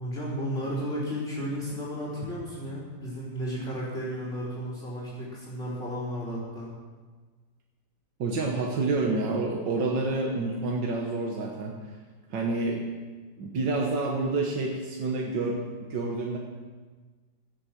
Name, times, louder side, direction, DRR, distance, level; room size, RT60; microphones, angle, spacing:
voice 1, 0.0-6.7, equal, 35° left, -7 dB, 4.8 m, -33 dB
voice 2, 8.2-11.8 12.3-12.8 13.4-16.4, right 3 dB, 90° right, 0 dB, 2.0 m, -28 dB
17.0 x 8.6 x 6.1 m, 1.4 s
omnidirectional pair, 1.9 m